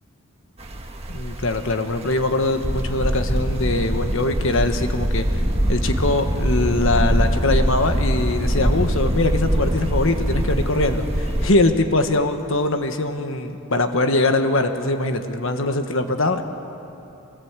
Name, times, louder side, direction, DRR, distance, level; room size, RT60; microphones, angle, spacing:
sound 1, 0.6-11.5, equal, 25° right, 1.5 m, -23 dB
voice 1, 1.1-5.4 5.7-16.4, left 2 dB, 60° left, 7 dB, 1.4 m, -22 dB
25.0 x 19.5 x 8.3 m, 2.9 s
head